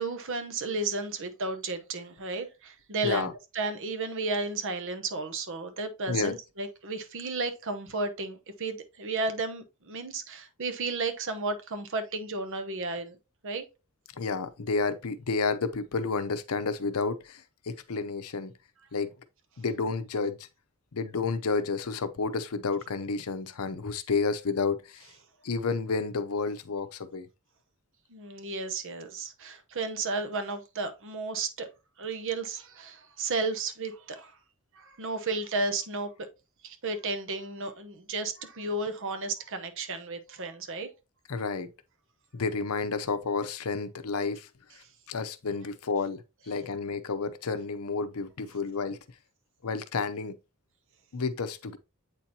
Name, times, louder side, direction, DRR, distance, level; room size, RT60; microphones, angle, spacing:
voice 1, 0.0-3.3 3.5-13.2 13.4-13.6 28.1-31.7 32.0-34.4 34.7-36.3 36.6-40.9, right 3 dB, 60° right, 0.9 m, -33 dB
voice 2, 14.2-18.5 18.9-19.1 19.6-20.5 20.9-25.0 25.4-27.3 41.3-41.7 42.3-44.5 45.1-49.0 49.6-50.4 51.1-51.8, left 4 dB, 75° left, 0.7 m, -30 dB
8.1 x 4.4 x 2.8 m
head